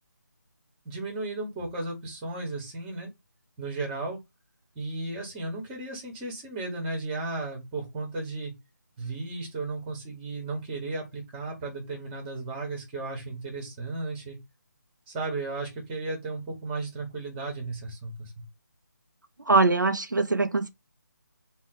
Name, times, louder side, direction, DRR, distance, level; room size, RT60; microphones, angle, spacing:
voice 1, 0.8-3.1 3.6-4.2 4.7-8.5 9.0-14.4 15.1-18.4, right 3 dB, 15° right, 1.3 m, -34 dB
voice 2, 19.5-20.7, right 3 dB, 75° right, 0.5 m, -22 dB
4.2 x 2.4 x 4.1 m
figure-of-eight pair, 150°, 10 cm